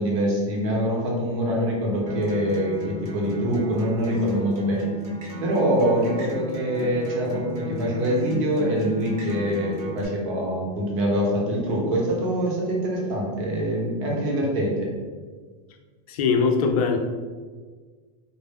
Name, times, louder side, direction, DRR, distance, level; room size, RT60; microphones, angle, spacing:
voice 1, 0.0-4.9 5.4-14.9, equal, 55° right, -3 dB, 0.8 m, -24 dB
Acoustic guitar, 2.1-10.0, left 1 dB, 90° right, 0.8 m, -34 dB
voice 2, 16.1-17.0, left 5 dB, 75° left, 5 dB, 0.4 m, -21 dB
2.1 x 2.0 x 3.3 m, 1.5 s
supercardioid pair, 165°, 19 cm